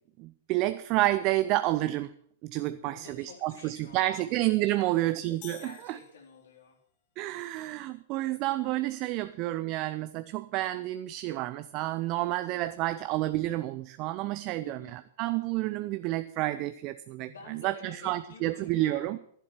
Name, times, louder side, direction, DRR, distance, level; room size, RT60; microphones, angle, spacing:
voice 1, 0.2-2.1 2.4-6.0 7.2-19.2, right 16 dB, 40° right, 13 dB, 0.5 m, -30 dB
voice 2, 2.6-4.3 4.8-5.1 5.6-6.8 14.6-15.0 17.2-19.2, left 4 dB, 70° left, 1 dB, 3.6 m, -50 dB
sound 1, 5.4-6.8, left 12 dB, 40° left, 1.6 m, -51 dB
11.5 x 11.0 x 6.1 m, 0.65 s
figure-of-eight pair, 105°, 0 cm